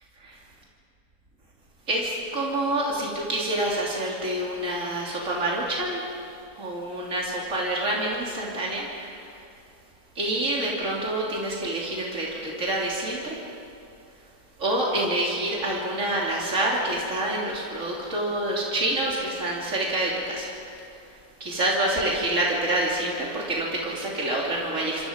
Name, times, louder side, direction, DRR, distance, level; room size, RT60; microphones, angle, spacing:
voice 1, 1.9-6.3 6.6-9.4 10.2-13.4 14.6-25.1, right 1 dB, 60° right, -4 dB, 3.5 m, -27 dB
29.0 x 26.0 x 5.2 m, 2.7 s
omnidirectional pair, 1.5 m